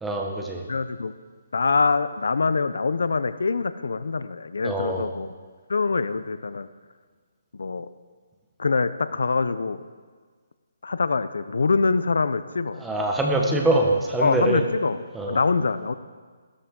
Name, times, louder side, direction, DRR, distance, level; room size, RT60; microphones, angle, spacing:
voice 1, 0.0-0.6 4.6-5.1 12.8-14.6 15.1-15.4, right 1 dB, 5° right, 1 dB, 1.1 m, -24 dB
voice 2, 0.7-1.1 1.5-5.3 5.7-6.7 7.6-7.9 8.6-9.8 10.8-12.8 14.2-15.0 15.3-15.9, left 4 dB, 80° left, 13 dB, 0.6 m, -24 dB
14.5 x 13.0 x 3.8 m, 1.6 s
hypercardioid pair, 170°, 0 cm